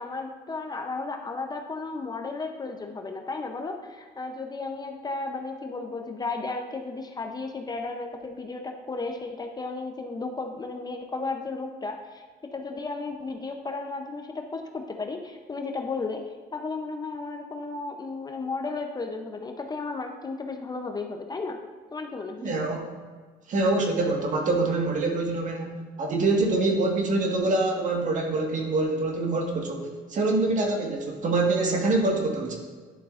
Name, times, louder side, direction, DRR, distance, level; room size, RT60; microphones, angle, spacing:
voice 1, 0.0-12.2 12.5-21.6 21.9-22.5, left 3 dB, 25° left, 4 dB, 0.7 m, -34 dB
voice 2, 22.4-22.9 23.5-32.6, right 2 dB, 50° right, 1 dB, 1.6 m, -25 dB
11.0 x 6.6 x 2.5 m, 1.5 s
cardioid pair, 110°, 17 cm